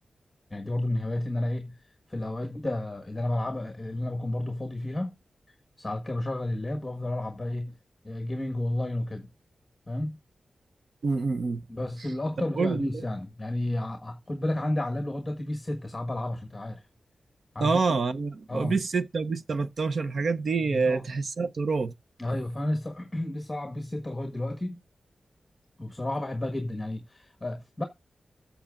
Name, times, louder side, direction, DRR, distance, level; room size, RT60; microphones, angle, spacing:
voice 1, 0.5-1.8 2.1-5.1 5.8-7.7 8.0-9.3 9.9-10.2 11.7-16.8 17.5-18.0 18.5-18.7 20.6-21.0 22.2-24.8 25.8-27.8, left 1 dB, 15° left, 1.4 m, -31 dB
voice 2, 11.0-11.6 12.6-13.0 17.6-21.9, right 4 dB, 55° right, 0.7 m, -27 dB
14.5 x 7.0 x 2.4 m
wide cardioid pair, 155°, 0 cm